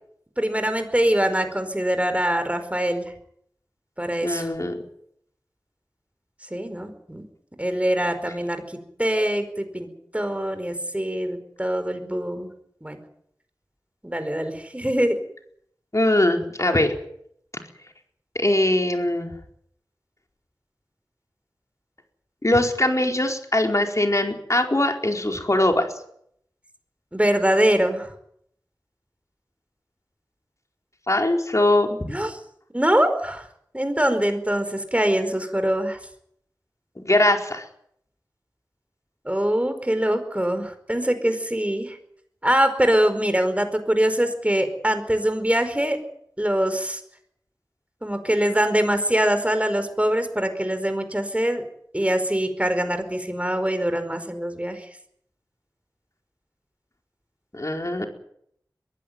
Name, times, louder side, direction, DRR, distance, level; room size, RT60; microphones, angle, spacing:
voice 1, 0.4-3.1 4.0-4.5 6.5-7.2 7.6-8.6 9.0-9.9 10.1-12.5 12.8-13.0 14.0-15.2 27.1-28.1 32.1-32.4 32.7-33.5 33.7-36.0 39.2-42.0 42.4-46.0 46.4-47.0 48.0-51.6 51.9-54.9, right 1 dB, 20° right, 9 dB, 4.8 m, -23 dB
voice 2, 4.2-4.8 15.9-16.9 18.3-19.3 22.4-25.9 31.1-32.0 37.0-37.6 57.5-58.1, left 1 dB, 45° left, 3 dB, 4.5 m, -21 dB
22.5 x 16.0 x 9.4 m, 0.70 s
wide cardioid pair, 40°, 7 cm